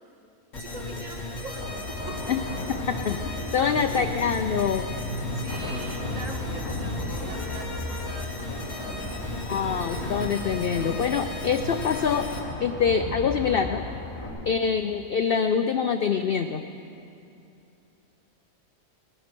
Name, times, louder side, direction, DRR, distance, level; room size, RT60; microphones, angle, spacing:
sound 1, 0.5-12.4, left 2 dB, 55° left, 2.3 m, -36 dB
voice 1, 0.6-2.2 3.4-4.3 5.3-9.1 14.1-14.5, right 2 dB, 60° right, 2 dB, 1.7 m, -42 dB
sound 2, 1.5-14.3, left 1 dB, 35° left, 4.0 m, -35 dB
voice 2, 3.5-4.8 9.4-12.3 12.6-13.8 14.4-16.6, left 7 dB, 75° left, 8 dB, 0.5 m, -25 dB
19.5 x 10.0 x 6.0 m, 2.7 s
omnidirectional pair, 1.5 m